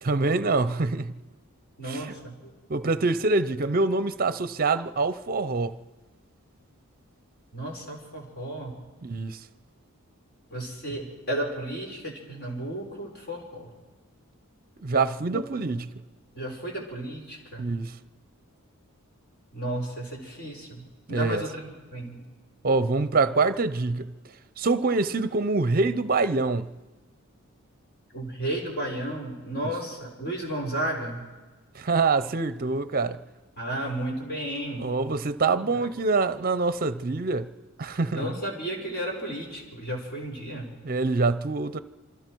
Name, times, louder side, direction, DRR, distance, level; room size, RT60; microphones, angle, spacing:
voice 1, 0.0-1.1 1.8-2.1 2.7-5.7 9.0-9.4 14.8-15.9 17.6-17.9 21.1-21.4 22.6-24.1 24.6-26.7 31.7-33.2 34.8-37.5 37.8-38.4 40.8-41.8, right 3 dB, 40° right, 0.7 m, -25 dB
voice 2, 1.8-2.5 7.5-8.7 10.5-13.7 15.3-15.4 16.3-17.7 19.5-22.2 28.1-31.2 33.6-34.8 35.6-35.9 38.1-40.7, right 1 dB, 45° left, 4.4 m, -33 dB
27.0 x 24.5 x 4.6 m
head